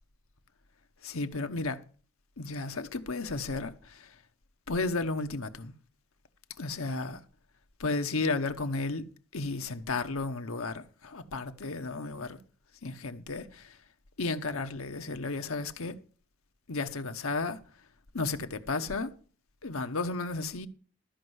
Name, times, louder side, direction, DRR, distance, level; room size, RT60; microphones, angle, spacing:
voice 1, 1.0-1.8 2.4-4.2 4.7-5.7 6.6-7.2 7.8-9.1 9.3-12.4 12.8-13.8 14.2-16.0 16.7-17.6 18.1-19.1 19.6-20.7, left 3 dB, 70° left, 1.0 m, -33 dB
13.0 x 5.5 x 7.9 m
head